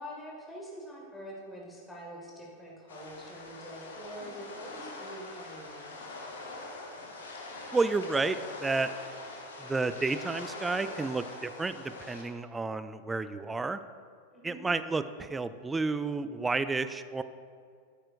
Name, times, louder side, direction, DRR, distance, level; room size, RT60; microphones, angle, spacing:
voice 1, 0.0-6.0 14.3-14.7, equal, 10° left, -4 dB, 2.0 m, -45 dB
sound 1, 2.9-12.2, left 2 dB, 65° left, 1.3 m, -43 dB
voice 2, 7.7-8.9 9.6-13.8 14.4-17.2, right 3 dB, 10° right, 12 dB, 0.4 m, -31 dB
11.5 x 8.8 x 2.6 m, 2.2 s
figure-of-eight pair, 90°, 0 cm